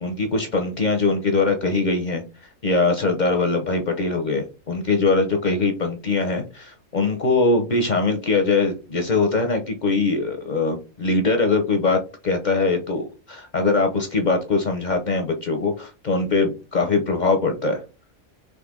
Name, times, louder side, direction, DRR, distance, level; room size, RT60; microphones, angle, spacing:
voice 1, 0.0-2.2 2.6-17.8, left 3 dB, 45° left, 4 dB, 0.6 m, -22 dB
3.9 x 3.2 x 3.6 m, 0.31 s
omnidirectional pair, 1.4 m